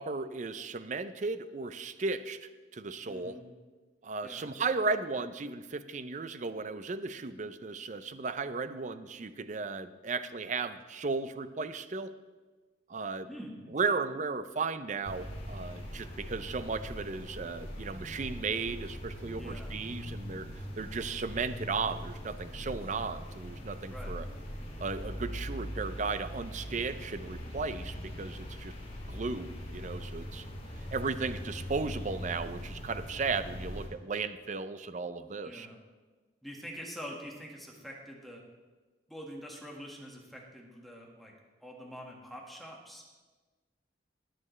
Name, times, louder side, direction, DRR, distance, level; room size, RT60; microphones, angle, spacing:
voice 1, 0.0-3.4 4.0-12.1 12.9-13.3 13.7-20.5 20.8-24.3 24.8-28.7 29.1-30.4 30.9-35.7, right 4 dB, 40° right, 12 dB, 0.5 m, -35 dB
voice 2, 3.1-3.5 4.2-4.5 13.3-14.0 19.4-19.7 23.9-24.2 35.4-35.8 36.4-38.4 39.1-41.3 41.6-43.0, equal, ahead, -2 dB, 1.7 m, -45 dB
sound 1, 15.0-33.9, equal, 35° left, 1.8 m, -41 dB
21.5 x 7.6 x 3.2 m, 1.3 s
head